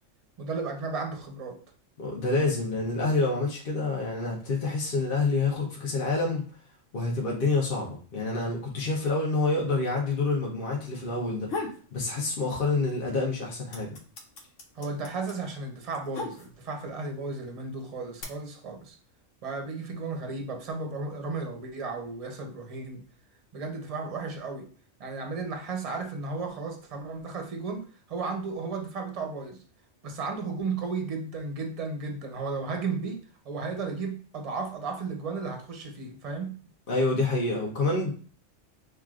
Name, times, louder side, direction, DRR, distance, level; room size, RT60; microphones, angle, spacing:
voice 1, 0.4-1.6 14.7-19.0 19.4-23.0 23.5-24.7 25.0-29.6 30.0-36.6, right 4 dB, 35° right, 0.7 m, -34 dB
voice 2, 2.0-6.4 6.9-11.5 11.9-13.9 36.9-38.1, left 3 dB, 50° left, 1.0 m, -27 dB
sound 1, 11.4-11.9 12.3-13.0 13.2-16.8 17.6-18.2, left 3 dB, 80° left, 1.2 m, -37 dB
5.9 x 2.5 x 2.4 m
omnidirectional pair, 1.3 m